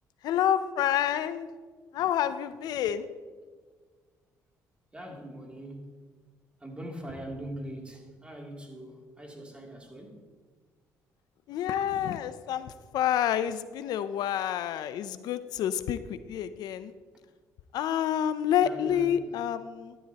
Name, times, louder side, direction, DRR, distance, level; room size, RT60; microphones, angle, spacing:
voice 1, 0.2-1.5 1.9-3.1 11.5-16.9 17.7-20.0, left 10 dB, 75° left, 13 dB, 0.5 m, -28 dB
voice 2, 4.9-5.9 6.6-10.3 18.6-19.4, right 1 dB, 15° right, 0 dB, 2.8 m, -42 dB
12.5 x 11.5 x 2.9 m, 1.5 s
cardioid pair, 80°, 7 cm